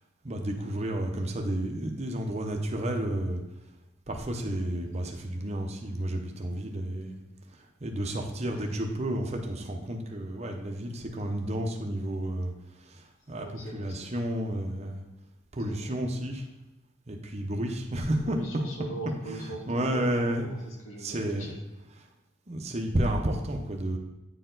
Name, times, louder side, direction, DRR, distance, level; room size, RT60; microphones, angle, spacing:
voice 1, 0.2-3.4 4.1-7.2 7.8-12.5 12.8-15.0 15.5-16.4 17.1-18.5 19.2-20.5 21.0-21.5 21.9-22.1 22.5-24.0, right 1 dB, 30° right, 3 dB, 0.8 m, -31 dB
voice 2, 13.4-14.2 15.7-15.9 18.2-21.6, right 1 dB, 90° left, -2 dB, 1.8 m, -41 dB
8.9 x 4.5 x 3.9 m, 1.0 s
head